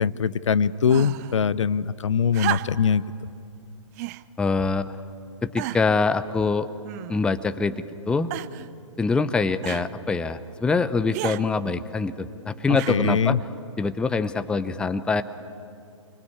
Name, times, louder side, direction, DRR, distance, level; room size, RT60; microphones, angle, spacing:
voice 1, 0.0-3.0 12.7-13.4, left 7 dB, 65° left, 17 dB, 0.8 m, -22 dB
sound 1, 0.9-1.4 2.3-3.0 4.0-4.3 5.0-5.1 5.6-6.0 6.8-7.4 8.3-8.7 9.6-9.9 11.1-11.4 12.7-13.2 14.2-14.3, right 17 dB, 30° right, 0.7 m, -32 dB
voice 2, 4.4-4.9 5.4-6.7 7.1-8.3 9.0-13.4 13.8-15.2, left 4 dB, 5° left, 11 dB, 0.7 m, -24 dB
28.5 x 24.0 x 8.6 m, 2.6 s
figure-of-eight pair, 125°, 17 cm